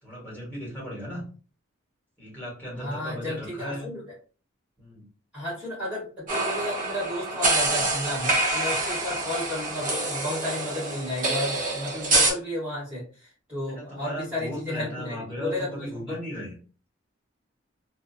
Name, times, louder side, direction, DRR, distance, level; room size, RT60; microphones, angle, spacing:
voice 1, 0.0-1.2 2.2-3.9 4.8-5.1 9.1-9.2 13.7-16.5, equal, 10° left, -5 dB, 1.1 m, -36 dB
voice 2, 2.8-4.0 5.3-13.0 13.5-16.2, left 1 dB, 5° right, -8 dB, 1.1 m, -33 dB
sound 1, 6.3-12.3, right 2 dB, 40° right, 0.8 m, -26 dB
2.5 x 2.1 x 2.6 m, 0.38 s
head